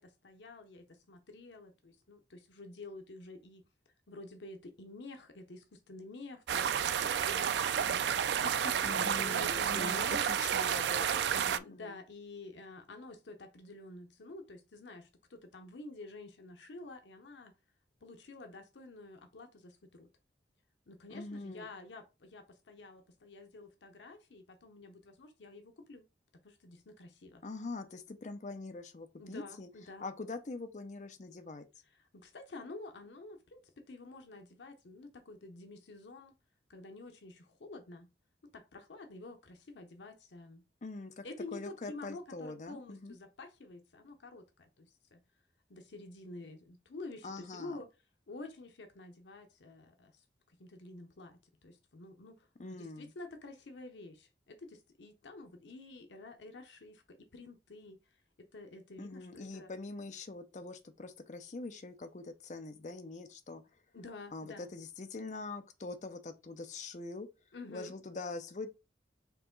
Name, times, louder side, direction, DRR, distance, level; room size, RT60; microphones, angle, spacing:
voice 1, 0.0-3.7 4.1-10.3 11.6-17.5 18.0-20.1 20.9-26.1 26.4-27.4 29.2-30.1 32.0-36.3 36.7-38.1 38.5-40.6 41.2-45.2 45.7-47.9 48.3-58.0 58.4-59.7 63.9-64.7 67.5-67.9, left 2 dB, 85° left, 0.7 m, -49 dB
sound 1, 6.5-11.6, right 8 dB, 75° right, 0.3 m, -31 dB
voice 2, 8.8-12.0 21.1-21.7 27.4-29.7 30.0-31.7 40.8-41.2 41.5-43.2 47.2-47.8 52.6-53.1 59.0-63.6 64.3-67.3 67.7-68.7, left 3 dB, 40° left, 0.5 m, -43 dB
4.6 x 2.9 x 3.8 m
head